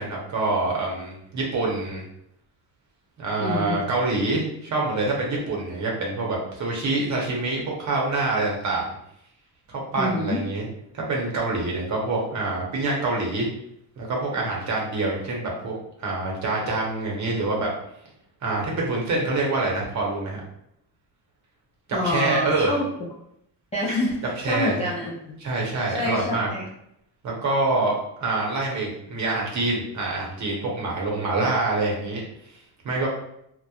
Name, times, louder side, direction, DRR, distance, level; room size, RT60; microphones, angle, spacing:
voice 1, 0.0-2.0 3.2-8.9 9.7-10.7 10.9-13.5 14.0-15.7 16.0-17.7 18.4-20.4 22.0-22.7 24.4-24.8 25.4-26.5 27.2-32.2 32.8-33.1, right 2 dB, 40° right, -2 dB, 0.8 m, -26 dB
voice 2, 3.4-3.8 10.0-10.4 21.9-22.8 23.7-25.3 25.9-26.6, left 1 dB, 15° left, -7 dB, 0.3 m, -27 dB
2.9 x 2.0 x 2.3 m, 0.76 s
cardioid pair, 130°, 43 cm